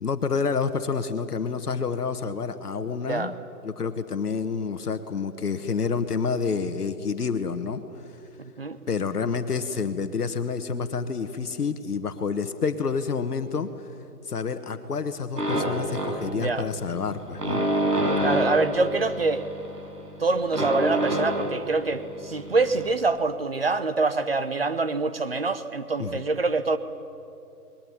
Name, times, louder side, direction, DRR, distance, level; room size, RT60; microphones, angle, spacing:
voice 1, 0.0-3.3 3.6-7.8 8.9-13.7 14.3-17.7 26.0-26.2, left 5 dB, 70° left, 9 dB, 1.4 m, -28 dB
voice 2, 2.9-3.3 8.4-8.8 16.3-16.7 18.2-19.4 20.2-26.8, right 3 dB, 40° right, 11 dB, 0.9 m, -25 dB
sound 1, 15.4-22.9, right 1 dB, 85° right, 6.0 m, -28 dB
21.0 x 18.0 x 9.7 m, 2.7 s
hypercardioid pair, 175°, 47 cm